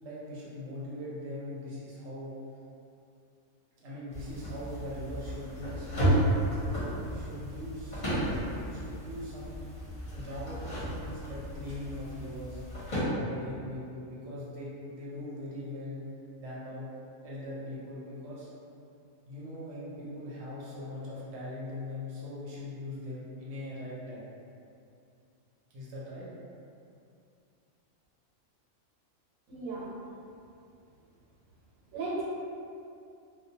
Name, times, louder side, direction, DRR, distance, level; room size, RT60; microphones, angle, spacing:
voice 1, 0.0-2.4 3.8-6.2 6.6-8.1 8.5-9.7 10.1-12.6 13.1-16.0 16.4-16.8 17.2-18.5 19.3-24.2 25.7-26.2, left 1 dB, 65° right, -7 dB, 0.9 m, -41 dB
sound 1, 4.1-13.0, right 1 dB, 40° left, 0.7 m, -33 dB
voice 2, 29.5-29.9 31.9-32.2, right 3 dB, 90° right, -7 dB, 1.1 m, -35 dB
2.2 x 2.2 x 2.7 m, 2.5 s
omnidirectional pair, 1.4 m